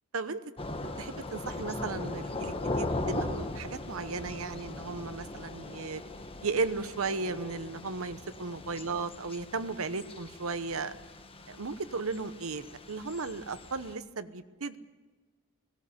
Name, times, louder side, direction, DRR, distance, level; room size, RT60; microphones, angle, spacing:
Thunder / Rain, 0.6-13.9, left 2 dB, 25° left, 1.3 m, -39 dB
sound 1, 0.8-12.6, left 1 dB, 50° left, 2.1 m, -56 dB
voice 1, 0.8-6.0 6.4-10.9 11.5-14.8, right 4 dB, 70° right, 12 dB, 1.0 m, -35 dB
18.0 x 17.0 x 9.6 m, 1.4 s
head